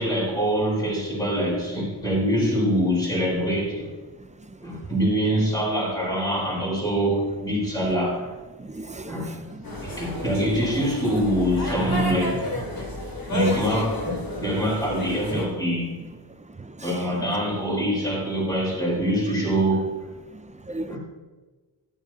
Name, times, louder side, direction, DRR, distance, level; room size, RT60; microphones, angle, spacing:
voice 1, 0.0-3.9 4.6-8.3 9.1-9.3 9.8-12.8 13.3-16.0 16.8-19.9 20.9-21.0, equal, 10° left, 4.2 m, -24 dB
voice 2, 8.6-10.0 15.3-15.4 16.6-17.0 20.3-21.0, right 2 dB, 15° right, 0.4 m, -37 dB
sound 1, 9.6-15.5, left 2 dB, 45° left, 2.5 m, -31 dB
13.0 x 12.0 x 2.9 m
wide cardioid pair, 150°, 50 cm